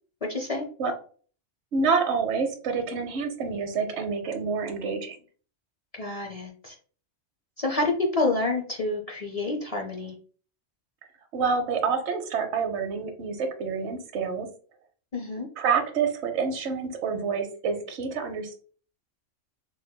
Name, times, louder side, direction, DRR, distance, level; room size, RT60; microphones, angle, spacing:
voice 1, 0.2-0.7 5.9-6.7 7.6-10.2 15.1-15.5, left 2 dB, 45° left, 1 dB, 0.5 m, -28 dB
voice 2, 1.7-5.2 11.3-14.5 15.6-18.6, right 5 dB, 65° right, 6 dB, 1.0 m, -27 dB
4.0 x 3.0 x 2.2 m, 0.42 s
omnidirectional pair, 1.3 m